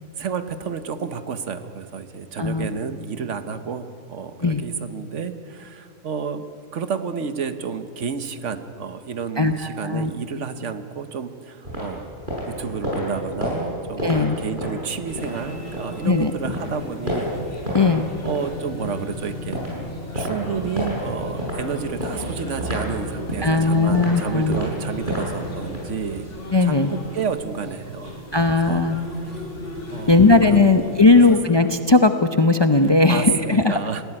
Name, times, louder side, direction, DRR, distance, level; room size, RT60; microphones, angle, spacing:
voice 1, 0.2-6.4 6.7-12.1 12.5-17.3 17.6-17.9 18.2-19.8 20.1-26.3 26.6-29.3 29.9-31.1 33.1-34.0, right 6 dB, 70° right, 10 dB, 1.3 m, -31 dB
voice 2, 9.4-10.1 14.0-14.4 16.0-16.3 17.7-18.1 23.4-24.6 26.5-26.9 28.3-29.0 30.1-32.1 32.4-33.8, left 3 dB, 25° left, 8 dB, 0.6 m, -17 dB
sound 1, 11.6-16.0 16.4-17.9 18.2-25.9, equal, 40° right, 7.1 m, -30 dB
sound 2, 15.0-31.4, left 1 dB, 65° left, 3.3 m, -36 dB
20.0 x 15.5 x 10.0 m, 2.4 s
omnidirectional pair, 1.3 m